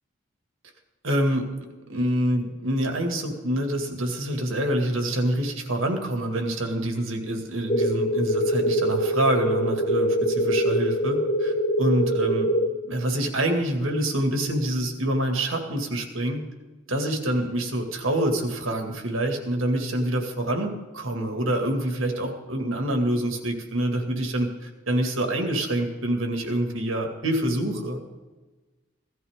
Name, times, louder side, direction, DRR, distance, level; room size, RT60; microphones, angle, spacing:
voice 1, 1.0-1.4 1.9-12.5 12.9-16.4 16.9-28.0, right 1 dB, 90° right, 4 dB, 2.2 m, -26 dB
sound 1, 7.7-12.7, equal, 30° left, 0.9 m, -24 dB
16.5 x 14.0 x 3.7 m, 1.2 s
head